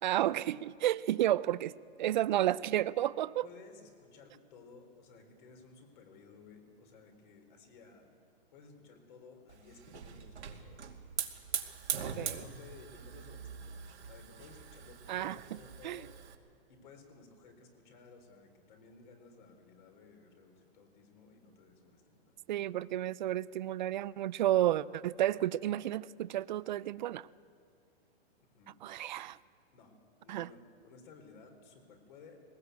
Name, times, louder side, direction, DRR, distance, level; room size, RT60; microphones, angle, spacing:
voice 1, 0.0-3.5 12.0-12.4 15.1-15.6 15.8-16.1 22.5-27.3 28.8-29.4 30.3-30.5, right 13 dB, 45° right, 0.5 m, -32 dB
voice 2, 3.4-8.1 8.5-10.9 12.0-16.1 16.7-22.3 28.5-28.8 29.7-30.0 30.2-32.4, left 4 dB, 45° left, 4.2 m, -56 dB
Hiss / Fire, 9.5-16.3, right 7 dB, 90° right, 2.4 m, -42 dB
20.5 x 19.0 x 8.2 m
hypercardioid pair, 155°, 33 cm